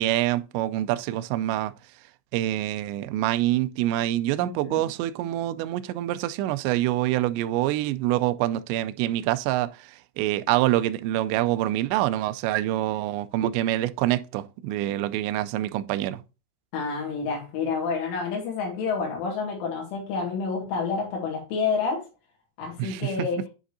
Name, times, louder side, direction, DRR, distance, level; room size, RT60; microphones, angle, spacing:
voice 1, 0.0-1.7 2.3-16.2 22.8-23.3, right 14 dB, 85° right, 2.6 m, -26 dB
voice 2, 4.4-4.9 16.7-22.0 22.6-23.4, left 5 dB, 85° left, 4.5 m, -29 dB
9.0 x 5.0 x 2.6 m
omnidirectional pair, 5.5 m